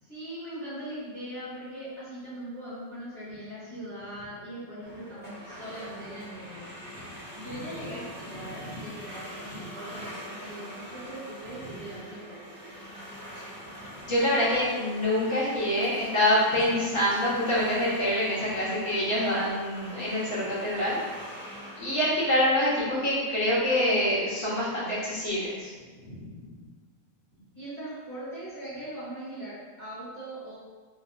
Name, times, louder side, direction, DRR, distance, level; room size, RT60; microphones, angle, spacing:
voice 1, 0.0-12.4 27.5-30.6, right 1 dB, 45° right, -10 dB, 1.0 m, -40 dB
sound 1, 4.8-22.4, equal, 10° left, 0.7 m, -43 dB
voice 2, 8.3-8.9 9.5-9.6 13.4-13.5 14.0-21.0 21.8-25.7 26.0-26.6, left 1 dB, 45° left, -9 dB, 1.4 m, -26 dB
3.2 x 3.1 x 2.6 m, 1.5 s
omnidirectional pair, 1.9 m